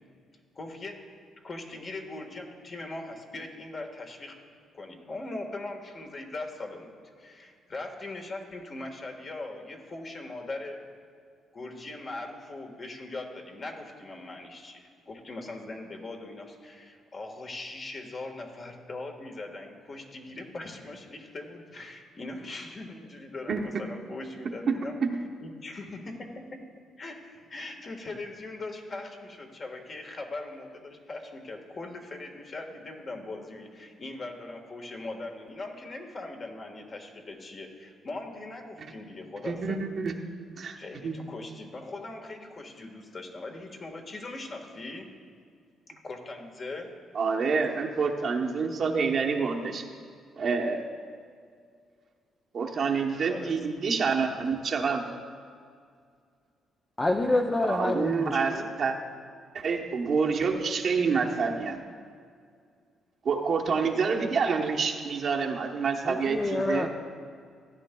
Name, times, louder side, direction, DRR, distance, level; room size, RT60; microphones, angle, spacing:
voice 1, 0.5-1.0 1.4-4.4 4.7-10.8 11.5-24.9 25.4-26.6 27.0-39.8 40.8-45.1 46.0-46.9 53.3-53.6 58.3-58.7, left 2 dB, 40° left, 3 dB, 1.5 m, -40 dB
voice 2, 24.7-25.2 39.4-40.1 40.6-40.8 41.0-41.2 47.1-49.8 50.4-50.8 52.5-55.0 57.6-58.9 59.5-61.8 63.2-66.9, right 5 dB, 55° right, 2 dB, 0.9 m, -27 dB
voice 3, 57.0-58.3 66.1-66.9, left 2 dB, 20° left, 3 dB, 0.5 m, -27 dB
15.5 x 10.0 x 2.3 m, 2.2 s
cardioid pair, 90°, 0 cm